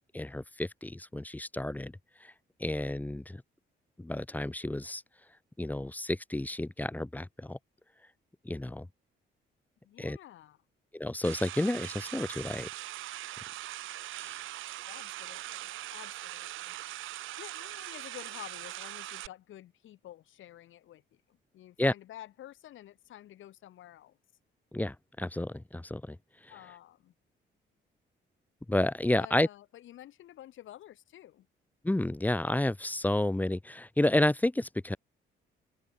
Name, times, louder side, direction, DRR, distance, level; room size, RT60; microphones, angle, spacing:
voice 1, 0.1-1.9 2.2-2.3 2.6-3.4 4.0-5.0 5.6-7.6 8.4-8.9 10.0-10.2 10.9-12.7 14.1-14.4 21.8-21.9 24.7-26.2 26.4-26.5 28.7-29.5 31.8-35.0, left 1 dB, 10° left, 0.9 m, -31 dB
voice 2, 9.8-10.6 14.8-16.8 17.3-24.2 26.5-27.1 29.1-31.5, left 13 dB, 80° left, 5.2 m, -50 dB
sound 1, 11.2-19.3, right 15 dB, 80° right, 1.0 m, -41 dB
open air
cardioid pair, 90°, 20 cm